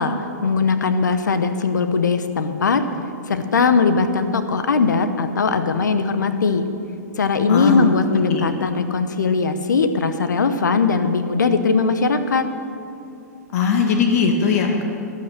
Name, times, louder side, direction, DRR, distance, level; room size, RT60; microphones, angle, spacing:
voice 1, 0.0-2.8 3.3-6.7 7.2-12.5, left 4 dB, 85° left, 9 dB, 1.0 m, -20 dB
voice 2, 7.5-8.4 13.5-14.8, left 5 dB, 60° left, 3 dB, 1.5 m, -19 dB
11.5 x 9.8 x 6.7 m, 2.6 s
hypercardioid pair, 120°, 10 cm